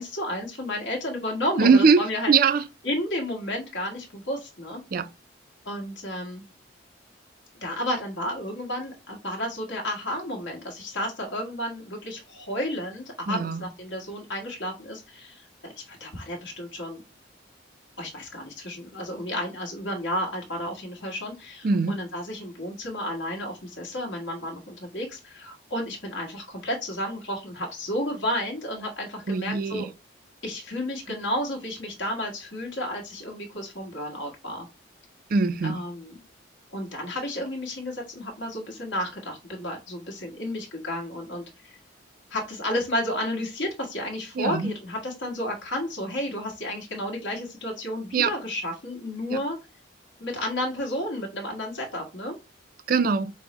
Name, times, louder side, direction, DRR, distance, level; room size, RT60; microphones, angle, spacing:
voice 1, 0.0-2.3 2.8-4.8 5.6-6.4 7.6-17.0 18.0-29.9 30.4-34.7 35.6-36.1 36.7-41.8 42.3-49.6 50.2-52.4, left 1 dB, 70° left, 1.3 m, -32 dB
voice 2, 1.6-2.6 4.9-5.1 13.3-13.6 21.6-22.0 29.3-29.9 35.3-35.8 44.4-44.7 48.1-48.3 49.3-49.4 52.9-53.3, right 5 dB, 45° right, 0.3 m, -22 dB
5.3 x 2.1 x 2.9 m
head